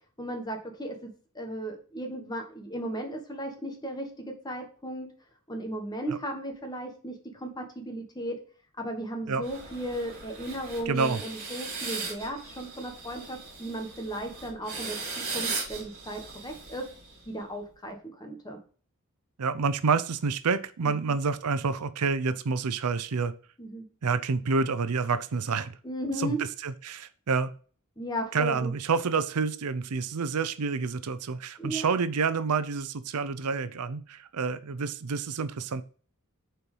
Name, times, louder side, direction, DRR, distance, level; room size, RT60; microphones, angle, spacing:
voice 1, 0.2-1.1 1.3-5.1 5.5-8.4 8.8-15.0 15.3-16.8 17.3-18.6 20.8-20.9 23.6-23.9 25.8-26.4 28.0-28.7 31.6-31.9, right 1 dB, 20° left, 4 dB, 1.4 m, -36 dB
sound 1, 9.4-17.4, right 4 dB, 40° right, 3.2 m, -38 dB
voice 2, 10.9-11.2 19.4-23.3 24.0-25.8 26.2-26.4 26.6-27.5 28.3-35.8, right 5 dB, 90° right, 13 dB, 0.6 m, -28 dB
6.8 x 4.5 x 5.5 m, 0.40 s
head